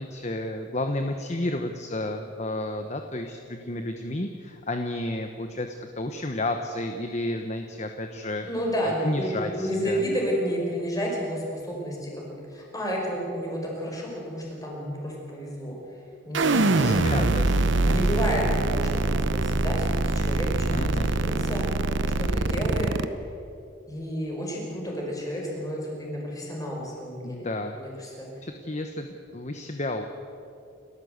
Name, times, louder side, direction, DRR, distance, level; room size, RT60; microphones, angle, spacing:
voice 1, 0.0-8.5 9.0-10.0 16.8-18.0 20.7-21.1 27.2-28.1 28.4-30.1, left 1 dB, 35° left, 6 dB, 1.1 m, -32 dB
voice 2, 8.4-17.4 17.8-21.6 22.2-22.9 23.9-27.5 27.7-28.3, equal, 20° left, -2 dB, 5.4 m, -31 dB
sound 1, 16.3-23.1, right 2 dB, 70° right, 0.9 m, -24 dB
29.0 x 14.0 x 8.1 m, 2.7 s
head